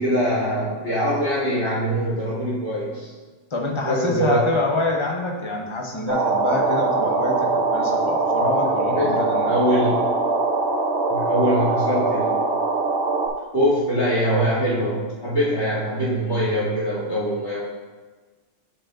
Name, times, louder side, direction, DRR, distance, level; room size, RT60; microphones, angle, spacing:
voice 1, 0.0-3.1 3.8-4.5 8.4-10.0 11.1-12.4 13.5-17.6, equal, 50° left, -15 dB, 2.9 m, -23 dB
voice 2, 3.5-9.5, left 2 dB, 25° left, -1 dB, 1.0 m, -26 dB
sound 1, 6.1-13.3, right 3 dB, 55° right, 1.1 m, -22 dB
13.0 x 4.7 x 2.6 m, 1.3 s
omnidirectional pair, 1.3 m